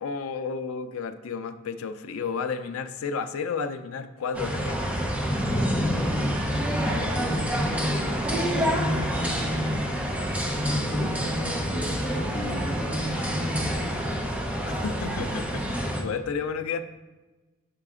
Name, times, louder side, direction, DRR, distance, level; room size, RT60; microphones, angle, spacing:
voice 1, 0.0-4.8 14.6-16.8, left 5 dB, 85° left, 9 dB, 0.4 m, -32 dB
sound 1, 4.3-16.0, equal, 5° right, 0.7 m, -28 dB
voice 2, 5.5-8.1 8.3-9.9 10.6-13.8, equal, 30° left, -6 dB, 1.0 m, -31 dB
6.6 x 4.9 x 3.6 m, 1.2 s
head